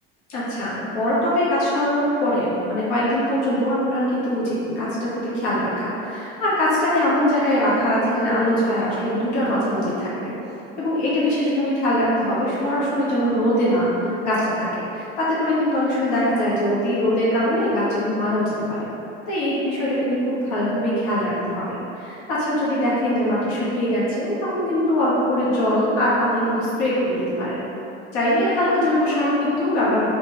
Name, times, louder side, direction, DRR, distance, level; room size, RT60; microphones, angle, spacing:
voice 1, 0.3-10.3 10.8-14.7 14.9-18.9 19.3-27.6 28.1-30.0, left 1 dB, 65° left, -8 dB, 1.2 m, -22 dB
3.2 x 3.0 x 4.3 m, 2.9 s
hypercardioid pair, 75°, 32 cm